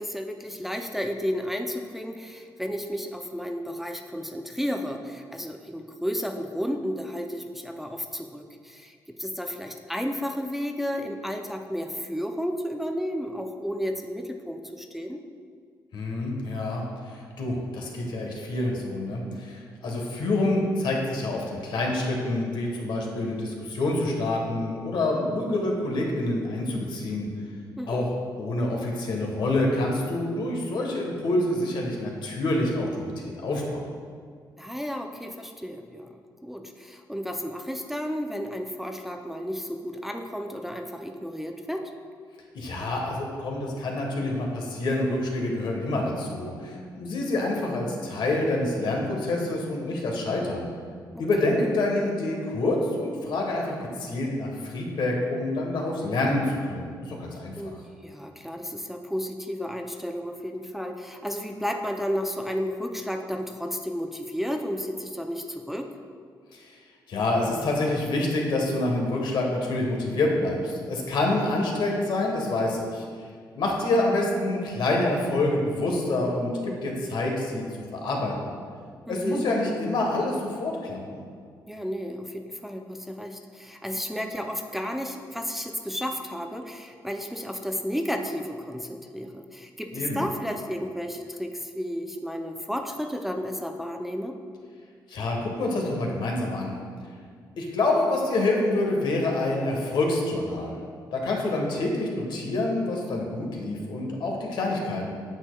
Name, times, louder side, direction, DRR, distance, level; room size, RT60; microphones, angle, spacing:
voice 1, 0.0-15.2 27.8-28.1 34.6-36.1 36.4-41.9 51.1-51.5 57.6-65.9 79.1-79.4 81.7-94.4, equal, 5° right, 3 dB, 0.4 m, -32 dB
voice 2, 15.9-16.8 17.1-27.3 27.9-28.1 28.4-33.1 33.4-33.8 42.5-50.7 51.2-57.7 66.5-66.6 67.1-73.0 73.5-77.6 77.9-78.6 79.1-81.2 89.9-90.2 95.1-96.8 97.6-100.8 101.1-105.1, left 2 dB, 75° left, 0 dB, 1.2 m, -27 dB
8.8 x 6.2 x 2.3 m, 2.1 s
cardioid pair, 90°, 8 cm